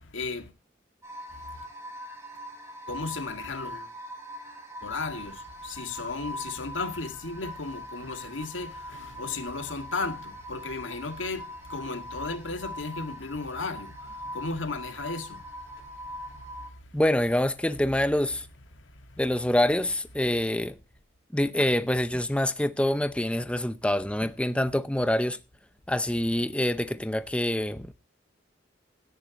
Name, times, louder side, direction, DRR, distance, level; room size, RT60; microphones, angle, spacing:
voice 1, 0.1-0.5 2.9-3.9 4.8-15.4 16.3-16.4, left 3 dB, 85° left, 2.0 m, -35 dB
sound 1, 1.0-16.7, equal, 15° right, 6.1 m, -42 dB
voice 2, 16.9-18.5 19.2-20.8 21.3-25.4 25.9-27.9, left 1 dB, 5° left, 0.6 m, -26 dB
17.0 x 10.5 x 2.9 m
head